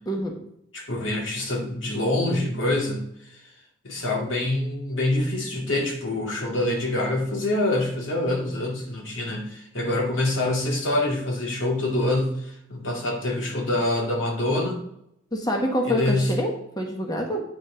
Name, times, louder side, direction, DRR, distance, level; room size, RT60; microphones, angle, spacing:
voice 1, 0.7-3.0 3.8-14.8 15.8-16.3, left 1 dB, 75° left, 0 dB, 2.3 m, -25 dB
voice 2, 15.3-17.4, equal, 20° left, 2 dB, 1.2 m, -26 dB
8.7 x 6.2 x 5.0 m, 0.77 s
head